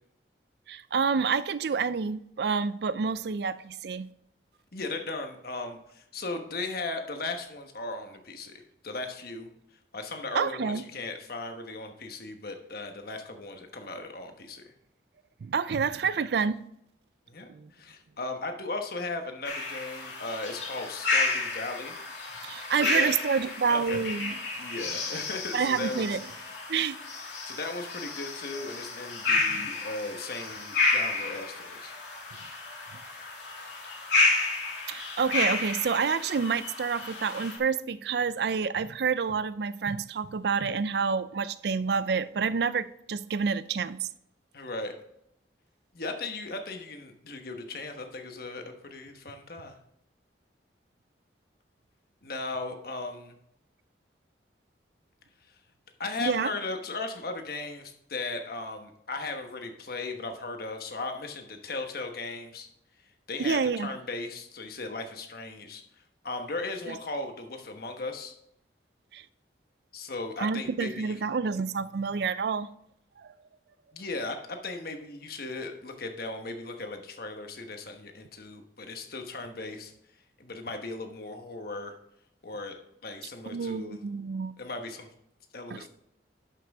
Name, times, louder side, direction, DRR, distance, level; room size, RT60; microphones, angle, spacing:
voice 1, 0.7-4.1 10.3-10.8 15.4-16.6 17.5-17.7 22.4-24.3 25.5-26.2 26.7-27.0 29.5-29.7 34.9-44.1 56.2-56.5 63.4-63.9 66.9-67.0 69.1-69.2 70.4-72.7 73.2-73.3 83.5-84.5 85.7-85.8, right 5 dB, 60° right, 0.4 m, -28 dB
voice 2, 4.7-9.5 9.9-14.6 17.3-22.0 22.7-23.1 23.7-24.0 24.6-26.1 27.5-31.9 44.5-44.9 45.9-49.8 52.2-53.3 56.0-62.7 63.3-65.8 66.2-68.3 69.9-71.1 73.9-79.9 80.4-82.0 82.4-82.8 83.0-84.0 84.6-85.1 85.5-85.9, left 3 dB, 55° left, 1.2 m, -37 dB
sound 1, 19.4-37.6, left 3 dB, 80° left, 2.5 m, -31 dB
11.5 x 5.9 x 3.5 m
head